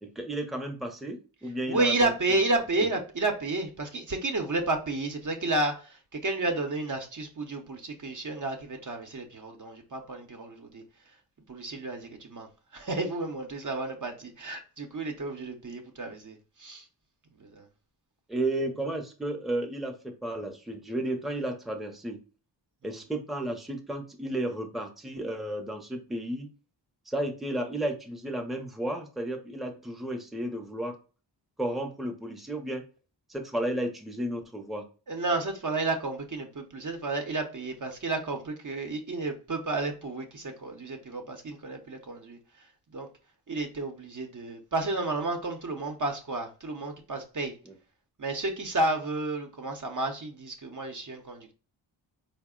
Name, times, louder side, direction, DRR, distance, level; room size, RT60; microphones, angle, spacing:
voice 1, 0.0-2.4 2.8-2.9 18.3-22.2 22.8-26.5 27.1-31.0 31.6-32.9 33.3-34.9 47.7-47.8, right 1 dB, ahead, 0.7 m, -33 dB
voice 2, 1.7-10.8 11.5-16.9 17.4-17.7 35.1-42.7 42.9-43.1 43.5-47.5 48.2-51.5, right 2 dB, 40° right, 0.8 m, -31 dB
4.0 x 2.1 x 3.7 m
cardioid pair, 45°, 47 cm